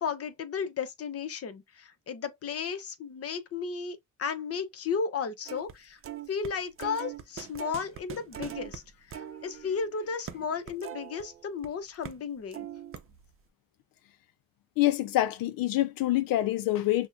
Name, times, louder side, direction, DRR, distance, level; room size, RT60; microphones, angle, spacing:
voice 1, 0.0-6.0 6.3-8.8 9.1-12.7, left 6 dB, 40° left, 0.8 m, -34 dB
sound 1, 5.5-5.7 6.0-11.7 12.0-12.2 12.5-13.3, right 9 dB, 40° right, 0.6 m, -42 dB
voice 2, 14.8-17.1, left 15 dB, 75° left, 0.5 m, -26 dB
6.0 x 2.2 x 2.6 m
cardioid pair, 100°, 35 cm